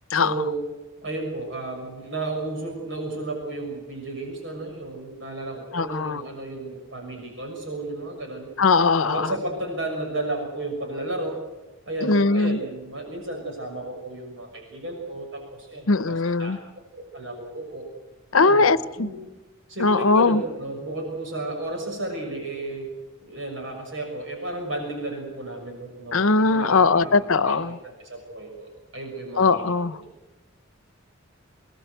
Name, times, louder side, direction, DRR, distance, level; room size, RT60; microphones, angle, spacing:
voice 1, 0.1-0.6 1.0-8.5 9.0-11.4 11.8-16.6 17.0-17.9 18.3-18.7 19.0-19.2 19.7-22.9 23.2-29.7 30.0-30.1, right 2 dB, 65° right, 1 dB, 6.3 m, -33 dB
voice 2, 5.7-6.2 8.6-9.3 12.0-12.6 15.9-16.6 18.3-19.1 19.8-20.4 26.1-27.8 29.4-30.0, left 4 dB, 80° left, 15 dB, 0.9 m, -20 dB
25.5 x 20.0 x 8.1 m, 1.1 s
head